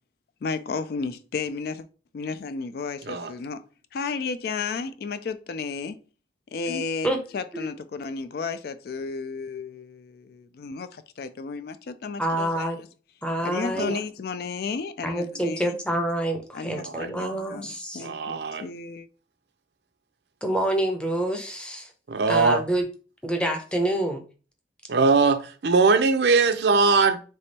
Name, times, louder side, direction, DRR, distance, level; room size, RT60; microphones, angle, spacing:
voice 1, 0.4-1.9 2.1-3.6 3.9-6.0 6.5-12.7 13.4-15.8 16.5-19.1, left 4 dB, 55° left, 0.3 m, -33 dB
voice 2, 12.2-12.8 13.2-13.9 15.0-18.1 20.4-21.9 22.3-22.9 23.2-24.2, right 1 dB, 5° left, 0.6 m, -27 dB
voice 3, 18.0-18.6 22.1-22.6 24.9-27.2, right 4 dB, 65° right, 0.5 m, -21 dB
3.4 x 3.3 x 4.1 m
head